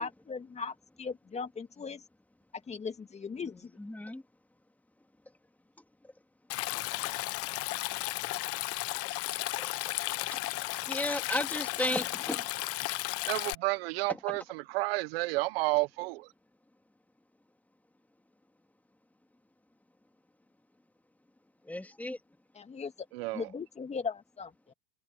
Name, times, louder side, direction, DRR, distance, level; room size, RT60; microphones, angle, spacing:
voice 1, 0.0-2.0 2.7-3.7 22.5-22.9 23.3-24.5, left 5 dB, 20° left, 2.3 m, -38 dB
voice 2, 3.8-4.2 10.9-12.4 21.7-22.2, left 1 dB, 5° left, 3.2 m, -33 dB
Stream, 6.5-13.5, left 19 dB, 50° left, 1.0 m, -34 dB
voice 3, 13.3-16.3 23.1-23.5, right 23 dB, 75° right, 1.3 m, -31 dB
supercardioid pair, 105°, 30 cm